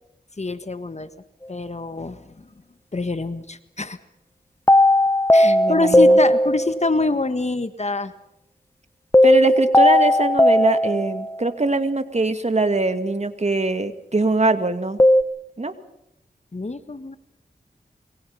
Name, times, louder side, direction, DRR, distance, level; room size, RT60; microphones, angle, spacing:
voice 1, 0.4-1.1 1.5-2.5 2.9-4.0 5.3-8.1 16.5-17.2, left 3 dB, 40° left, 11 dB, 1.6 m, -25 dB
sound 1, 4.7-6.9 9.1-11.5 15.0-15.2, left 1 dB, 15° left, 1.1 m, -16 dB
voice 2, 5.4-6.2 9.2-15.0 15.6-15.7, right 2 dB, 40° right, 9 dB, 2.2 m, -22 dB
28.0 x 23.0 x 5.6 m, 0.83 s
cardioid pair, 40°, 17 cm